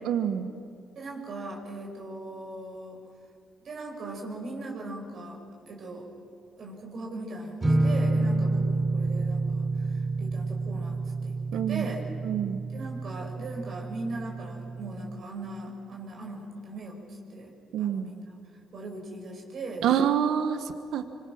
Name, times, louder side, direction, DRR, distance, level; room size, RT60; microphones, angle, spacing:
voice 1, 0.0-0.5 11.5-11.9 12.2-12.6 17.7-18.1 19.8-21.1, right 9 dB, 80° right, 9 dB, 1.2 m, -27 dB
voice 2, 1.0-3.0 3.6-5.4 5.7-6.1 6.6-12.0 12.7-17.5 17.8-18.4 18.7-19.8, right 2 dB, 60° right, 0 dB, 5.4 m, -39 dB
sound 1, 7.6-15.2, right 2 dB, 25° right, 3.6 m, -29 dB
26.5 x 25.0 x 6.1 m, 2.4 s
cardioid pair, 90°, 0 cm